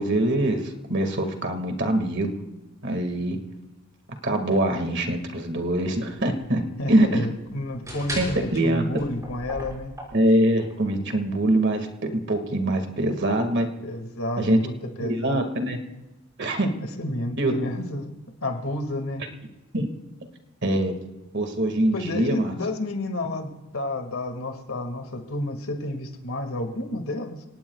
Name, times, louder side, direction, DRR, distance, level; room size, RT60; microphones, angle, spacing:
voice 1, 0.0-2.3 2.8-3.4 4.2-6.6 6.9-7.2 8.2-8.3 8.5-8.9 10.1-11.9 12.3-13.7 14.4-14.6 15.0-15.8 16.4-16.7 17.4-17.5 19.7-19.9 20.6-20.9 21.3-22.5, right 1 dB, 55° right, 6 dB, 2.0 m, -23 dB
sound 1, 5.4-10.7, equal, 15° right, 5.7 m, -38 dB
voice 2, 6.8-9.9 13.8-15.4 16.8-18.1 18.4-19.2 21.9-27.4, left 1 dB, 85° left, 5 dB, 2.1 m, -31 dB
28.5 x 18.0 x 2.4 m, 1.0 s
head